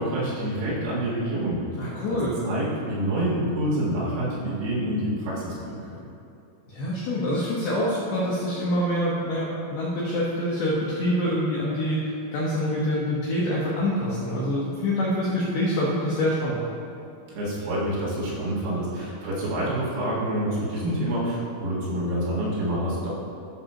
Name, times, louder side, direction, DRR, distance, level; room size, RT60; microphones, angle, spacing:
voice 1, 0.0-1.6 2.1-5.9 17.3-23.1, right 1 dB, 75° right, -7 dB, 4.3 m, -27 dB
voice 2, 1.8-2.4 6.7-16.6, left 1 dB, 75° left, -7 dB, 2.3 m, -26 dB
13.0 x 6.3 x 2.9 m, 2.7 s
omnidirectional pair, 6.0 m